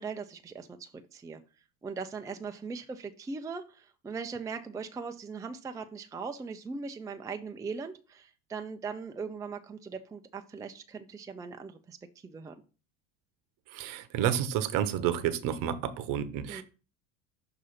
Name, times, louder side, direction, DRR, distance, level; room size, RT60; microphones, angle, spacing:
voice 1, 0.0-1.4 1.8-12.0 12.2-12.6 16.5-16.6, right 5 dB, 10° right, 0.5 m, -40 dB
voice 2, 13.7-16.6, right 10 dB, 55° right, 0.9 m, -30 dB
6.2 x 2.8 x 5.5 m
hypercardioid pair, 70°, 40 cm